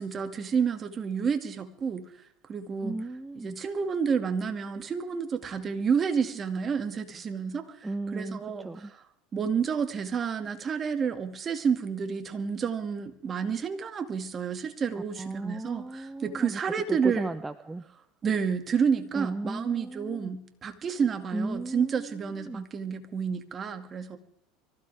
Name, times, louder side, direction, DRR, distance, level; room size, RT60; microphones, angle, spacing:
voice 1, 0.0-2.1 2.5-3.0 3.4-7.8 8.1-8.7 9.3-17.3 18.2-24.2, right 6 dB, 35° right, 7 dB, 2.3 m, -30 dB
voice 2, 2.8-3.6 7.8-8.9 14.9-17.8 19.1-20.4 21.3-22.7, right 2 dB, 10° right, 10 dB, 0.9 m, -36 dB
24.5 x 16.0 x 3.6 m, 0.73 s
hypercardioid pair, 95°, 0 cm